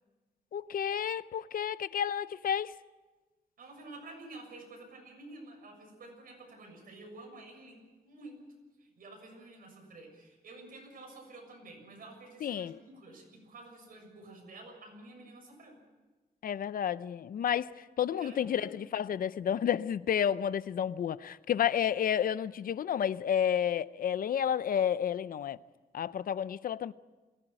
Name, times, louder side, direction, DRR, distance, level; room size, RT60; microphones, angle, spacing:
voice 1, 0.5-2.7 12.4-12.8 16.4-25.6 25.9-26.9, left 9 dB, 70° left, 0.6 m, -31 dB
voice 2, 3.6-8.4 8.8-15.8 18.2-18.7, right 2 dB, 75° right, 7.0 m, -50 dB
23.0 x 17.0 x 8.9 m
wide cardioid pair, 175°, 15 cm